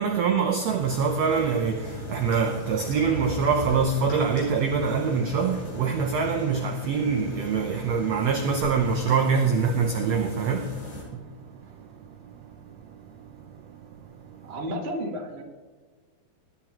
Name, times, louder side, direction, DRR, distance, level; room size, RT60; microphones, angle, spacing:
voice 1, 0.0-11.5 11.8-13.9 14.2-14.5, right 5 dB, 90° right, 1.4 m, -25 dB
sound 1, 0.7-11.0, left 2 dB, 60° left, 4.6 m, -39 dB
voice 2, 14.4-15.4, equal, 70° right, 0.6 m, -32 dB
21.0 x 11.5 x 3.0 m
omnidirectional pair, 4.1 m